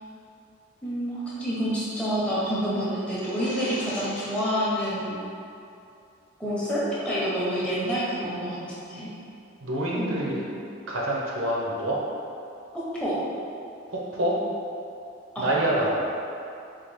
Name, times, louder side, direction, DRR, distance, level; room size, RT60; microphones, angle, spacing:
voice 1, 0.8-5.2 6.4-8.6 8.9-9.1 9.9-10.5 12.7-13.2 15.3-15.5, equal, 5° left, -9 dB, 0.6 m, -28 dB
sound 1, 3.0-4.8, left 2 dB, 60° left, 0.5 m, -41 dB
voice 2, 9.6-10.4 10.9-12.0 13.9-14.4 15.4-16.1, right 1 dB, 75° right, -4 dB, 0.6 m, -26 dB
3.8 x 2.4 x 3.1 m, 2.6 s
head